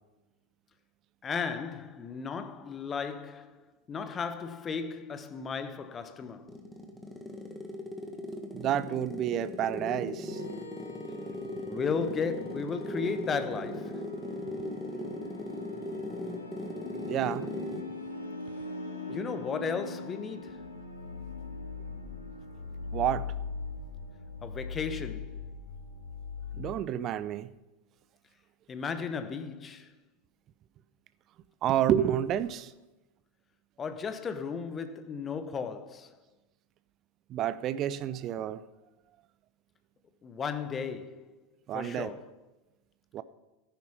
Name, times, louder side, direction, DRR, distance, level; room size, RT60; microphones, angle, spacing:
voice 1, 1.2-6.6 11.3-14.1 19.1-20.7 24.4-25.5 28.7-29.9 33.8-36.2 40.2-41.4 41.7-42.3, left 5 dB, 20° left, 1.1 m, -35 dB
sound 1, 6.2-18.0, left 1 dB, 5° left, 1.8 m, -38 dB
voice 2, 8.5-10.4 17.0-17.5 22.9-23.3 26.5-27.5 31.6-32.7 37.3-38.6 41.7-42.1 43.1-43.2, right 10 dB, 35° right, 0.6 m, -29 dB
sound 2, 10.2-26.8, left 4 dB, 80° left, 2.2 m, -41 dB
13.5 x 10.5 x 5.5 m
figure-of-eight pair, 90°, 0 cm